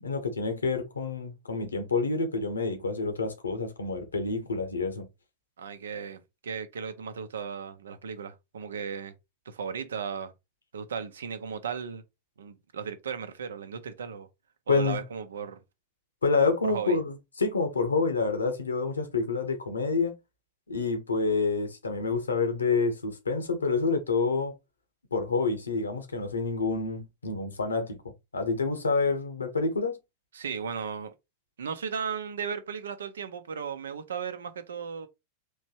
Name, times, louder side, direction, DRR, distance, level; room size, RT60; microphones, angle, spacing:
voice 1, 0.0-5.1 14.7-15.0 16.2-20.1 20.7-24.5 25.1-28.0 28.3-30.0, left 4 dB, 75° left, 1.1 m, -28 dB
voice 2, 5.6-9.1 9.5-10.3 10.7-12.0 12.4-14.3 14.7-15.6 16.6-17.0 30.3-31.1 31.6-35.1, right 6 dB, 65° right, 0.7 m, -36 dB
4.4 x 3.1 x 2.9 m
figure-of-eight pair, 90°, 0 cm